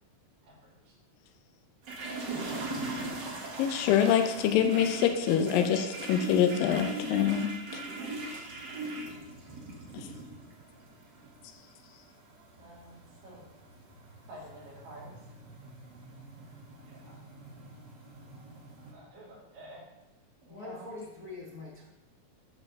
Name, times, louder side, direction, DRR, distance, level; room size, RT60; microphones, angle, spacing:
sound 1, 1.8-18.9, right 2 dB, 45° right, 1.6 m, -41 dB
voice 1, 3.6-7.5, left 9 dB, 85° left, 7 dB, 2.4 m, -25 dB
voice 2, 8.0-9.0 12.6-13.0 13.2-13.5 14.3-14.4 14.8-15.2 16.9-17.2 18.9-19.8 20.4-20.9, right 1 dB, 75° right, -5 dB, 4.2 m, -50 dB
voice 3, 20.5-21.9, left 3 dB, 65° left, -4 dB, 0.9 m, -43 dB
9.2 x 4.7 x 6.6 m, 1.0 s
omnidirectional pair, 4.0 m